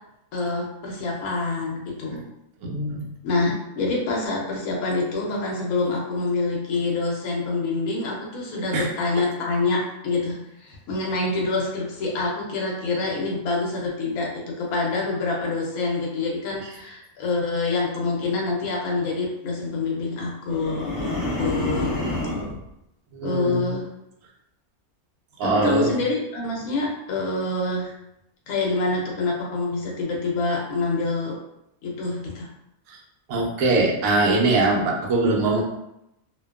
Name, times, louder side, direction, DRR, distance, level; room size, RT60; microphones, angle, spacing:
voice 1, 0.3-2.3 3.2-21.9 23.2-23.9 25.4-27.9 28.5-31.4 31.8-32.5, left 3 dB, 85° left, -2 dB, 1.1 m, -26 dB
voice 2, 2.6-3.1 8.7-8.9 23.1-23.7 25.4-25.9 32.9-33.0 33.3-35.6, right 2 dB, 75° right, -2 dB, 1.0 m, -22 dB
Monster Growl, 20.5-22.6, left 2 dB, 30° left, 1.0 m, -27 dB
2.6 x 2.2 x 2.3 m, 0.84 s
omnidirectional pair, 1.5 m